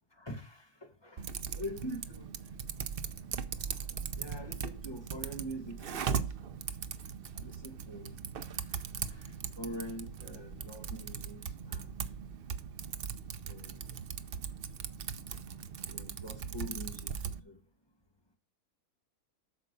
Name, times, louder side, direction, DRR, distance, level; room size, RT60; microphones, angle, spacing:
voice 1, 0.1-1.3 1.5-2.3 2.6-2.7 3.7-3.8 4.2-6.2 7.3-8.2 8.7-8.8 9.1-11.9 13.5-13.8 15.9-17.6, equal, 15° left, 1.9 m, -44 dB
Typing, 1.2-17.4, right 7 dB, 55° right, 0.7 m, -39 dB
8.7 x 6.6 x 5.3 m
omnidirectional pair, 1.6 m